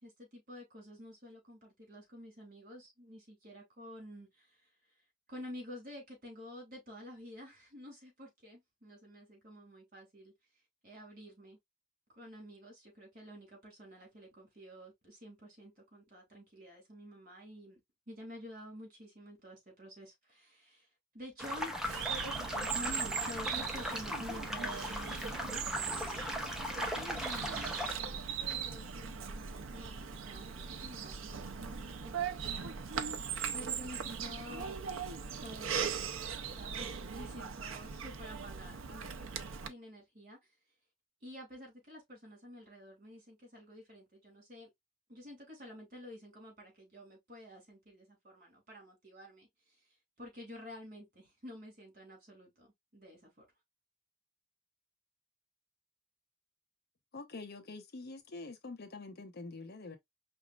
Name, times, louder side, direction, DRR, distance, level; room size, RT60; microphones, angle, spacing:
voice 1, 0.0-4.6 5.3-10.3 10.8-11.6 12.2-17.8 18.1-20.9 21.1-21.8 22.7-26.3 26.7-33.0 33.5-34.8 35.4-36.2 36.5-40.5 41.2-44.7 45.1-49.7 50.2-52.7 52.9-53.4, equal, 40° right, 2.9 m, -50 dB
sound 1, 21.4-27.9, left 1 dB, 5° right, 0.8 m, -38 dB
Bird vocalization bird call bird song, 21.8-39.7, right 6 dB, 75° right, 0.6 m, -39 dB
voice 2, 57.1-60.0, left 3 dB, 50° left, 0.8 m, -46 dB
5.0 x 3.5 x 2.4 m
head